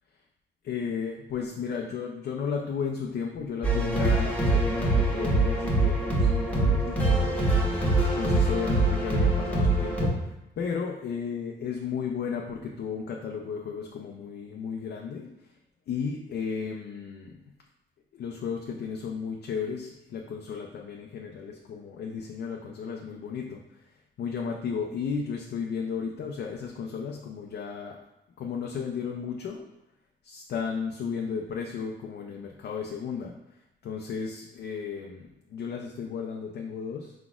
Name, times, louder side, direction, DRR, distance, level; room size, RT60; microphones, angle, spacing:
voice 1, 0.6-7.4 8.1-10.2 10.6-15.3 15.9-17.3 18.1-23.6 24.2-28.0 28.4-29.6 30.2-33.3 33.8-37.1, left 6 dB, 55° left, 1 dB, 0.5 m, -34 dB
sound 1, 3.6-10.1, right 2 dB, 5° left, 1.1 m, -24 dB
4.7 x 4.0 x 2.4 m, 0.92 s
cardioid pair, 90°, 20 cm